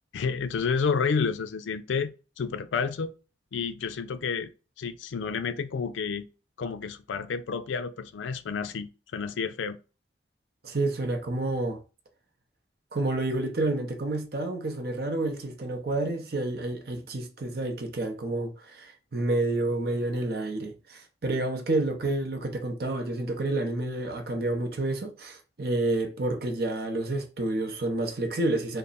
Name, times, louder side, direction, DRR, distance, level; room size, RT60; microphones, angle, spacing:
voice 1, 0.1-3.1 3.5-4.5 4.8-6.3 6.6-9.8, left 5 dB, 85° left, 0.4 m, -30 dB
voice 2, 10.6-11.8 12.9-28.8, right 2 dB, 55° right, 0.6 m, -29 dB
3.4 x 2.0 x 4.0 m
head